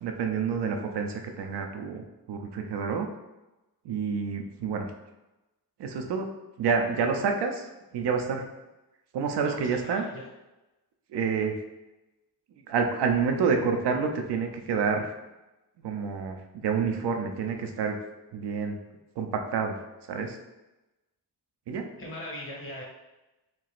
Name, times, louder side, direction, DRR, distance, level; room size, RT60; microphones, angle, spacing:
voice 1, 0.0-3.1 3.8-4.9 5.8-6.3 6.6-7.6 7.9-8.4 9.1-10.0 11.1-11.5 12.7-15.1 15.8-18.0 18.3-18.8 19.2-19.8 20.1-20.4 21.7-21.9, right 5 dB, 85° right, 4 dB, 0.6 m, -28 dB
voice 2, 9.3-10.2 22.0-22.8, left 1 dB, 30° left, -2 dB, 1.3 m, -39 dB
4.6 x 2.9 x 2.4 m, 1.0 s
cardioid pair, 85°, 39 cm